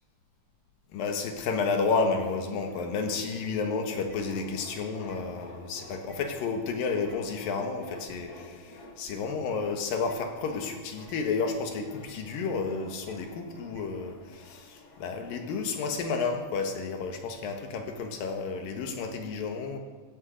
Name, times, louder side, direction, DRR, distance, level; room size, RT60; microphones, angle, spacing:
voice 1, 0.9-19.8, left 4 dB, 75° left, 4 dB, 3.2 m, -31 dB
sound 1, 2.1-17.8, left 2 dB, 55° left, 2.7 m, -50 dB
sound 2, 4.1-4.2 5.1-5.2 6.1-6.2 7.1-7.2 8.1-8.2 9.1-9.2 10.1-10.2 11.1-11.2 12.1-12.2 13.1-13.2 13.7-13.8, right 6 dB, 60° right, 2.3 m, -51 dB
15.5 x 9.0 x 7.6 m, 1.4 s
omnidirectional pair, 4.1 m